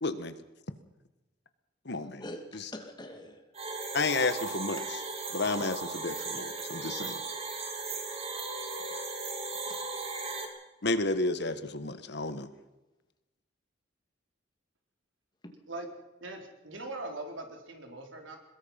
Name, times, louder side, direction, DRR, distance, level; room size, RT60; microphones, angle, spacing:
voice 1, 0.0-0.3 1.8-2.2 3.9-4.8 5.3-7.2 10.8-12.5, left 3 dB, 60° left, 12 dB, 1.4 m, -31 dB
voice 2, 2.0-3.5 4.8-4.9 9.7-9.8 11.9-12.0 15.4-15.6, left 1 dB, 25° left, 5 dB, 2.5 m, -45 dB
sound 1, 3.5-10.5, right 3 dB, 35° right, 3.1 m, -37 dB
voice 3, 16.2-18.4, right 2 dB, 85° right, 3 dB, 4.3 m, -41 dB
23.0 x 21.0 x 5.8 m, 1.0 s
head